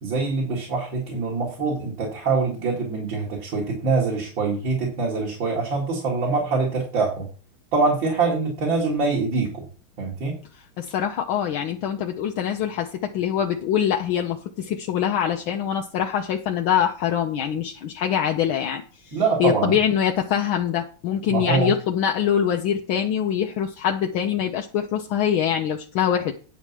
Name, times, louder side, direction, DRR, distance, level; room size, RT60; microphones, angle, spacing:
voice 1, 0.0-7.3 7.7-9.6 10.0-10.4 19.1-19.7 21.3-21.7, right 4 dB, 65° right, -2 dB, 2.9 m, -24 dB
voice 2, 10.8-26.3, left 9 dB, 75° left, 3 dB, 1.6 m, -24 dB
10.5 x 4.8 x 7.3 m, 0.40 s
omnidirectional pair, 2.4 m